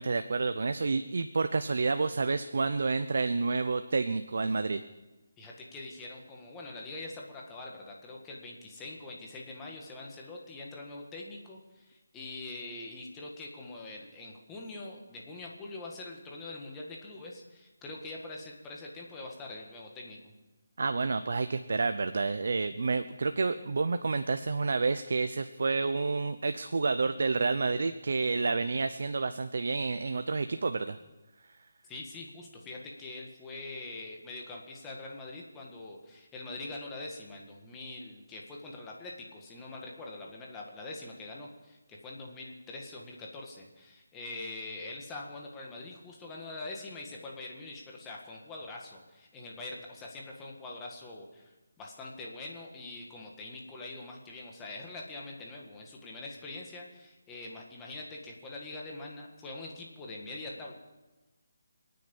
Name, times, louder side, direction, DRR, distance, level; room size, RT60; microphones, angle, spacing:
voice 1, 0.0-4.8 20.8-31.0, right 4 dB, 60° right, 10 dB, 0.7 m, -29 dB
voice 2, 5.4-20.2 31.9-60.7, left 2 dB, 10° left, -1 dB, 1.8 m, -44 dB
27.0 x 9.4 x 5.5 m, 1.1 s
hypercardioid pair, 170°, 0 cm